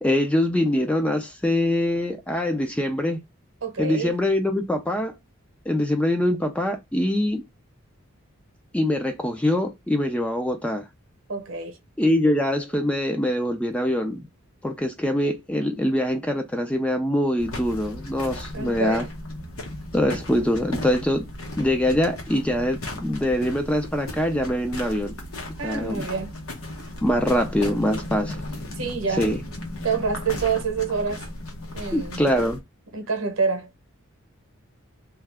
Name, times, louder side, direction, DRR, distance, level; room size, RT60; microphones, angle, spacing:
voice 1, 0.0-3.2 3.8-5.1 5.7-7.4 8.7-10.8 12.0-14.3 14.6-19.0 19.9-21.3 21.6-25.1 25.6-26.0 27.0-28.4 29.2-29.4 31.9-32.6, left 1 dB, 5° left, 0.4 m, -23 dB
voice 2, 3.6-4.1 11.3-11.8 18.5-19.1 25.6-26.4 27.2-27.3 28.7-29.3 29.8-31.3 31.7-32.2 32.9-33.7, right 5 dB, 75° right, 0.8 m, -27 dB
sound 1, 17.4-32.6, left 1 dB, 90° left, 0.9 m, -36 dB
2.8 x 2.3 x 3.3 m
head